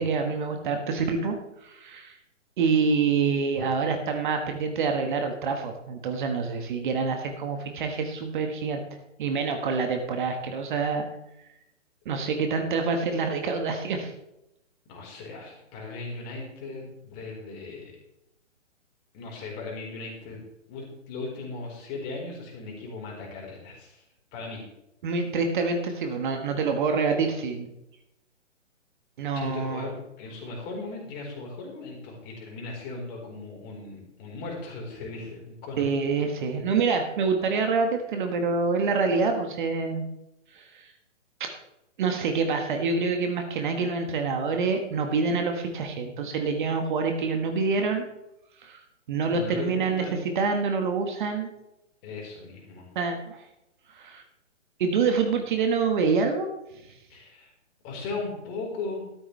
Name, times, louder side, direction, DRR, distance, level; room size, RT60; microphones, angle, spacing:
voice 1, 0.0-1.4 1.6-2.2 2.6-8.8 9.2-11.0 12.1-14.1 25.0-27.7 29.2-29.9 35.8-40.0 40.5-40.9 41.4-41.5 42.0-48.0 48.6-48.8 49.1-51.5 53.0-53.4 53.9-54.2 54.8-56.5, right 4 dB, 40° right, 5 dB, 1.7 m, -26 dB
voice 2, 14.9-17.9 19.1-20.4 20.7-24.0 24.3-24.6 29.3-35.8 49.2-50.2 52.0-52.9 57.1-57.5 57.8-59.0, left 3 dB, 25° left, -1 dB, 4.5 m, -37 dB
13.0 x 13.0 x 3.4 m, 0.86 s
figure-of-eight pair, 130°, 37 cm